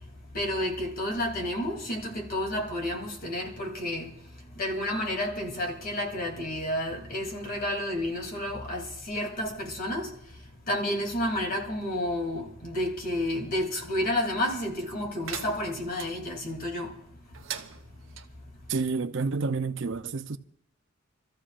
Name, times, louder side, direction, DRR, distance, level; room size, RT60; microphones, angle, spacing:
voice 1, 0.3-4.1 4.6-10.2 10.7-16.9, left 1 dB, 50° left, 3.0 m, -30 dB
sound 1, 15.2-16.1 17.3-18.3, right 9 dB, 90° right, 1.0 m, -40 dB
voice 2, 18.7-20.4, right 4 dB, 70° right, 0.6 m, -29 dB
28.0 x 14.0 x 2.5 m
head